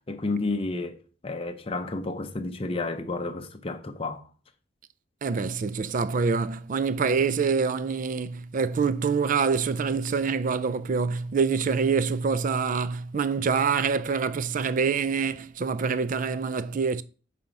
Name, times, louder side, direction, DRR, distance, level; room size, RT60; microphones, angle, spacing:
voice 1, 0.1-4.3, left 3 dB, 30° left, 0.6 m, -31 dB
voice 2, 5.2-17.0, right 5 dB, 40° right, 0.4 m, -26 dB
5.9 x 4.2 x 5.2 m
head